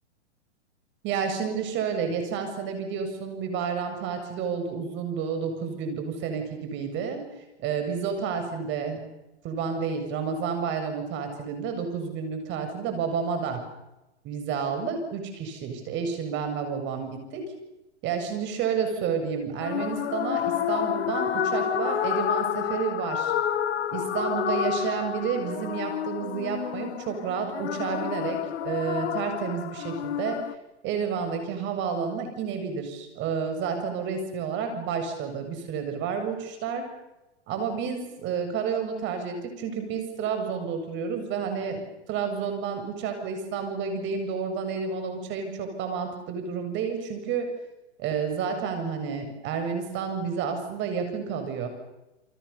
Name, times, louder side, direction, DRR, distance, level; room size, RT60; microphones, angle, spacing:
voice 1, 1.0-7.2 7.6-9.0 9.4-13.6 14.2-17.4 18.0-23.3 23.9-30.4 30.8-36.9 37.5-41.8 42.1-47.5 48.0-51.7, right 6 dB, 35° right, 7 dB, 7.7 m, -30 dB
sound 1, 19.6-30.5, left 9 dB, 65° left, 1.7 m, -29 dB
30.0 x 24.0 x 7.2 m, 0.96 s
hypercardioid pair, 130°, 34 cm